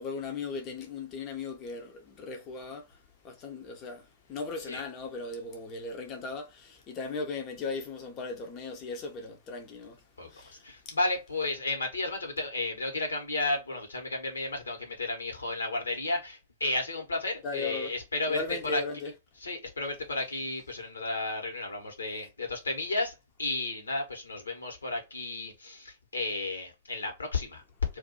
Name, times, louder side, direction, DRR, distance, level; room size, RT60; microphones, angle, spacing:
voice 1, 0.0-3.0 3.2-10.6 10.9-11.0 17.4-17.9 18.3-19.1, left 3 dB, 35° left, 0.7 m, -37 dB
voice 2, 10.6-18.4 18.7-18.8 19.4-27.6, left 2 dB, 75° left, 1.3 m, -33 dB
2.6 x 2.6 x 4.1 m
figure-of-eight pair, 100°, 0 cm